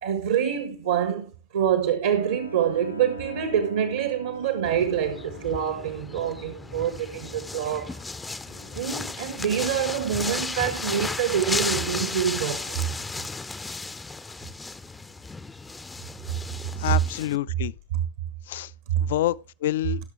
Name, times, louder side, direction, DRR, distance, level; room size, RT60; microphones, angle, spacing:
voice 1, 0.0-8.0 8.7-12.9 18.9-19.0, right 9 dB, 60° right, 1.5 m, -26 dB
Bowed string instrument, 2.0-9.0, right 2 dB, 85° left, 1.2 m, -43 dB
sound 1, 4.6-17.4, left 3 dB, 10° left, 0.6 m, -34 dB
voice 2, 16.7-17.7 18.5-18.7 19.0-20.0, left 14 dB, 55° left, 0.4 m, -27 dB
17.5 x 6.6 x 3.3 m
figure-of-eight pair, 90°, 0 cm